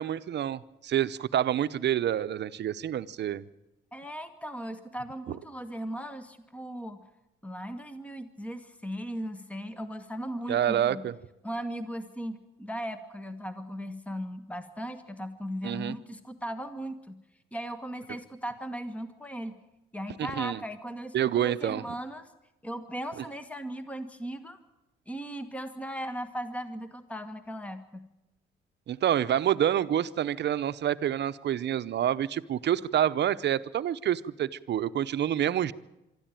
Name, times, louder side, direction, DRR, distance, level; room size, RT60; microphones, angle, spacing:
voice 1, 0.0-3.4 10.5-11.2 15.6-15.9 20.2-20.6 21.1-21.8 28.9-35.7, right 10 dB, 60° right, 14 dB, 0.8 m, -27 dB
voice 2, 3.9-7.0 7.4-11.0 11.4-17.2 17.5-19.5 19.9-22.3 22.6-24.6 25.1-28.0, equal, 5° left, 9 dB, 1.5 m, -37 dB
24.0 x 13.0 x 9.1 m, 0.93 s
cardioid pair, 90°, 20 cm